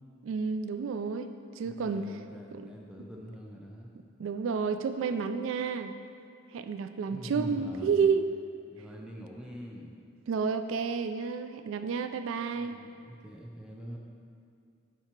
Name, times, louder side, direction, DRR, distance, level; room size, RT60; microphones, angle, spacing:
voice 1, 0.2-2.2 2.5-2.7 4.2-5.9 6.5-8.3 10.3-12.8, right 5 dB, 70° right, 9 dB, 0.3 m, -30 dB
voice 2, 1.6-3.9 7.1-8.1 8.7-9.9 12.6-14.0, equal, 5° right, -2 dB, 0.6 m, -44 dB
7.4 x 4.9 x 4.5 m, 2.4 s
head